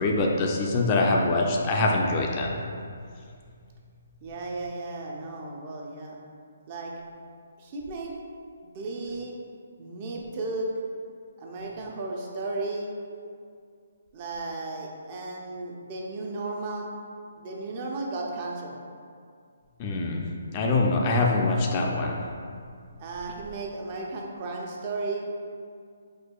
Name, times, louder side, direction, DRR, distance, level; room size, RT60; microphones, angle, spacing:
voice 1, 0.0-2.6 19.8-20.2 20.5-22.2, left 2 dB, 30° left, 0 dB, 0.3 m, -24 dB
voice 2, 4.2-6.2 6.7-6.9 7.6-8.1 8.6-9.3 9.8-10.7 11.4-12.9 14.1-16.9 17.4-18.8 23.0-25.3, right 2 dB, 35° right, -1 dB, 0.4 m, -34 dB
4.4 x 2.3 x 2.2 m, 2.3 s
hypercardioid pair, 145°, 0 cm